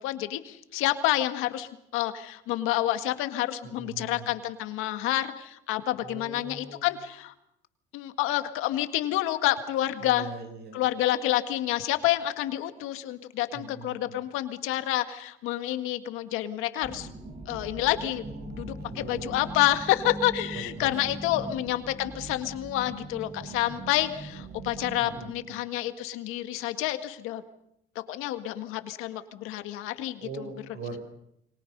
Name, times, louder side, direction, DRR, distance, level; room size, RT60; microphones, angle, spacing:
voice 1, 0.0-7.3 7.9-10.3 10.7-17.1 17.5-18.2 18.6-27.4 28.0-30.5, left 14 dB, 80° left, 9 dB, 1.8 m, -28 dB
voice 2, 3.6-4.3 6.0-6.9 10.0-10.9 13.5-14.2 18.2-19.6 20.5-21.6 25.0-25.6 30.2-31.0, right 3 dB, 55° right, 6 dB, 7.5 m, -42 dB
sound 1, 16.8-25.3, right 2 dB, 30° right, 6.0 m, -41 dB
29.0 x 24.0 x 5.4 m, 0.78 s
cardioid pair, 120°, 21 cm